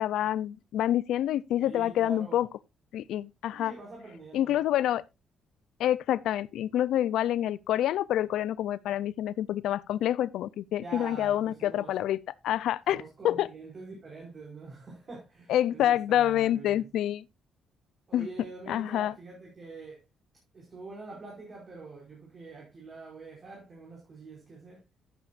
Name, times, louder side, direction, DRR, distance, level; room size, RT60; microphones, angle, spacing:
voice 1, 0.0-2.5 2.9-3.7 4.3-5.0 5.8-12.2 12.4-13.5 15.5-17.2 18.1-18.3 18.7-19.1, left 12 dB, 80° left, 0.4 m, -27 dB
voice 2, 1.6-2.4 3.5-4.5 10.8-11.9 12.9-16.9 18.1-20.0 20.5-24.8, right 3 dB, 40° right, 5.2 m, -45 dB
12.0 x 9.2 x 2.5 m
cardioid pair, 90°, 0 cm